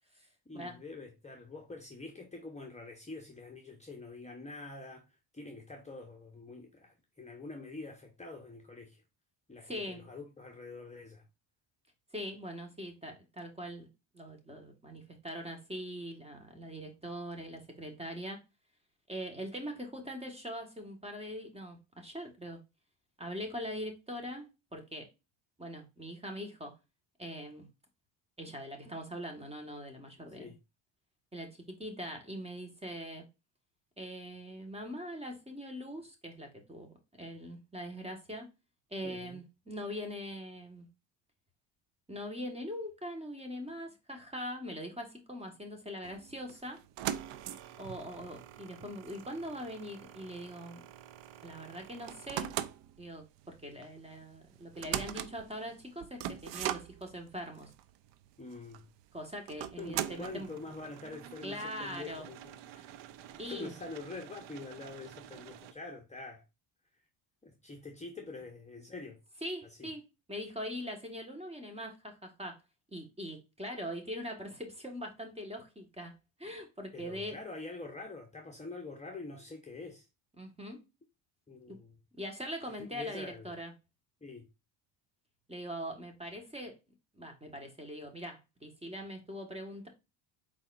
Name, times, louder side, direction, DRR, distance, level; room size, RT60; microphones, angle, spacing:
voice 1, 0.5-9.0 9.5-11.3 30.4-30.6 39.0-39.4 58.4-58.9 59.8-62.9 63.5-66.4 67.4-69.2 69.6-69.9 76.9-80.1 81.5-82.0 82.7-83.5 84.2-84.5, left 3 dB, 15° left, 1.1 m, -46 dB
voice 2, 9.6-10.0 12.1-13.9 14.1-18.4 19.1-22.6 23.2-25.1 25.6-26.7 27.2-27.7 28.4-30.5 31.3-33.2 34.0-38.5 38.9-40.9 42.1-46.8 47.8-50.8 51.4-52.5 53.0-57.7 59.1-60.5 61.4-62.3 63.4-63.7 69.4-70.0 70.3-72.6 72.9-77.4 80.4-80.8 81.7-81.8 82.2-83.7 85.5-86.7 87.1-89.9, equal, 10° right, 1.6 m, -42 dB
sound 1, 46.0-65.7, right 11 dB, 60° right, 0.7 m, -43 dB
4.9 x 4.0 x 2.5 m
supercardioid pair, 85°, 49 cm